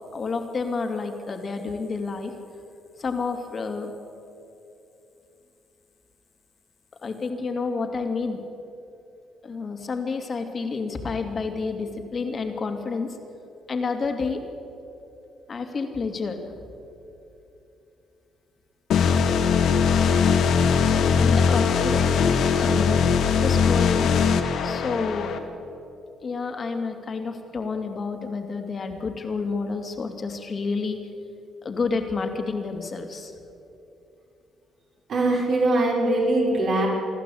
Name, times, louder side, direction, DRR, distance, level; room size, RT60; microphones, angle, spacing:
voice 1, 0.1-2.3 3.0-3.9 7.0-8.4 9.4-13.2 13.7-14.4 15.5-16.4 21.0-24.1 24.6-25.3 26.2-31.0 31.6-33.3, left 4 dB, 40° left, 5 dB, 2.6 m, -29 dB
sound 1, 18.9-25.4, left 6 dB, 75° left, 1.7 m, -20 dB
voice 2, 35.1-36.9, right 2 dB, 60° right, -2 dB, 6.1 m, -22 dB
27.0 x 12.0 x 8.6 m, 2.9 s
cardioid pair, 90°, 0 cm